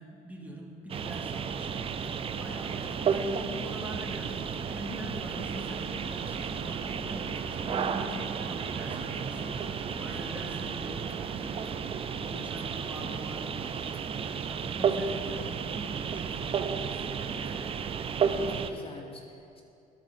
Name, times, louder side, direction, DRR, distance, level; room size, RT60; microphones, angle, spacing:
voice 1, 0.0-7.2 7.6-17.7, right 1 dB, 10° right, 0 dB, 1.1 m, -43 dB
sound 1, 0.9-18.7, right 6 dB, 35° right, 0.4 m, -33 dB
voice 2, 2.5-3.1 12.1-12.5 18.2-19.6, left 2 dB, 35° left, 2 dB, 0.8 m, -47 dB
sound 2, 4.7-12.0, right 2 dB, 55° right, 1.7 m, -46 dB
13.5 x 4.5 x 4.2 m, 2.6 s
cardioid pair, 110°, 17 cm